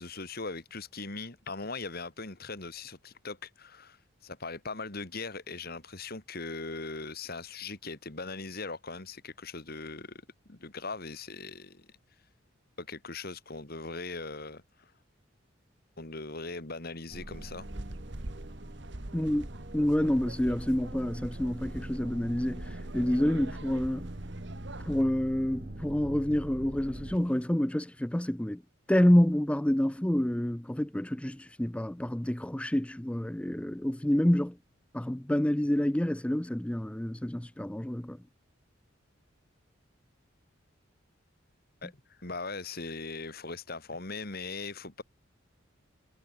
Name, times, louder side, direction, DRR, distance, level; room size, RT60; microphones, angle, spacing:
voice 1, 0.0-10.2 10.5-11.9 12.8-14.9 16.0-17.7 41.8-45.0, left 3 dB, 50° left, 2.7 m, -40 dB
sound 1, 17.1-27.5, right 1 dB, 45° right, 1.7 m, -43 dB
sound 2, 17.3-25.0, right 2 dB, 60° right, 2.0 m, -45 dB
voice 2, 19.1-19.5 19.7-24.1 24.9-28.6 28.9-34.6 34.9-38.2, left 1 dB, 5° left, 0.5 m, -28 dB
head